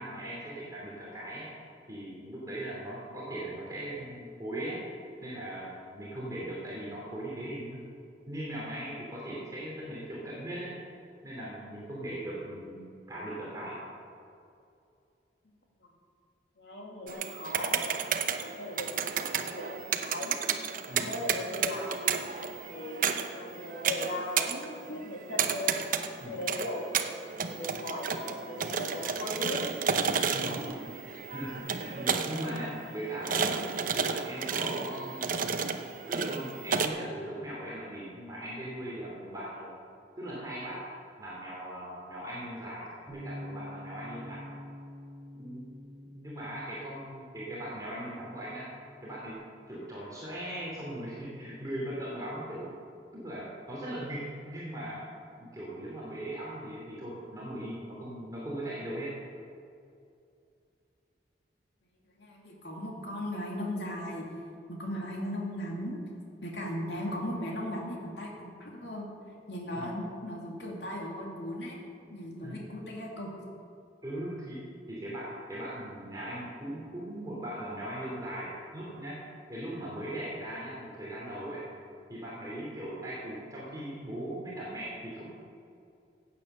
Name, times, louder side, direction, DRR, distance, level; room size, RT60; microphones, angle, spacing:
voice 1, 0.0-1.5 1.9-4.8 5.2-7.9 8.3-10.7 11.2-13.8 20.9-21.1 26.2-26.4 30.3-30.7 31.3-33.7 33.9-35.7 36.1-39.7 40.2-40.8 41.2-44.5 45.3-45.7 46.1-48.7 49.0-52.7 53.1-55.0 55.4-59.1 69.7-69.9 72.4-72.6 74.0-79.2 79.5-81.7 82.1-85.2, right 1 dB, 20° right, -6 dB, 2.9 m, -39 dB
voice 2, 16.6-17.8 18.1-18.9 19.2-20.4 20.9-22.0 22.7-23.0 23.3-25.8 26.2-26.9 27.2-29.8 30.4-30.6 62.2-64.3 64.7-66.0 66.4-69.1 69.5-71.8 72.1-73.3, left 1 dB, 75° left, -2 dB, 2.5 m, -37 dB
sound 1, 17.1-36.9, right 6 dB, 50° right, 0.8 m, -32 dB
Bass guitar, 43.1-49.3, equal, 5° right, 3.9 m, -47 dB
16.5 x 8.6 x 6.8 m, 2.5 s
head